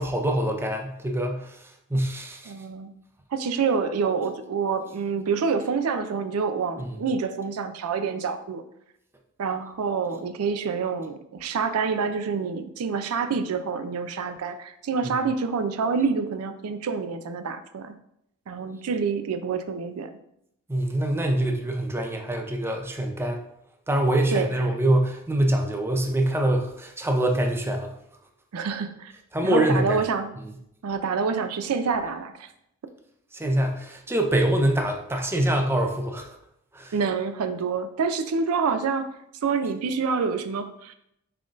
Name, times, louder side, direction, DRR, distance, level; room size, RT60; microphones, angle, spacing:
voice 1, 0.0-1.6 1.9-2.5 6.8-6.9 20.7-23.4 23.9-28.0 29.3-30.0 33.3-36.4 36.7-36.9, right 1 dB, 10° right, 2 dB, 0.5 m, -24 dB
voice 2, 2.5-2.9 3.3-8.6 9.4-17.9 18.5-20.1 24.3-24.5 28.5-29.1 29.4-30.3 30.8-32.5 36.9-39.1 39.4-40.9, right 5 dB, 70° right, 9 dB, 0.4 m, -27 dB
5.7 x 3.7 x 2.5 m, 0.76 s
head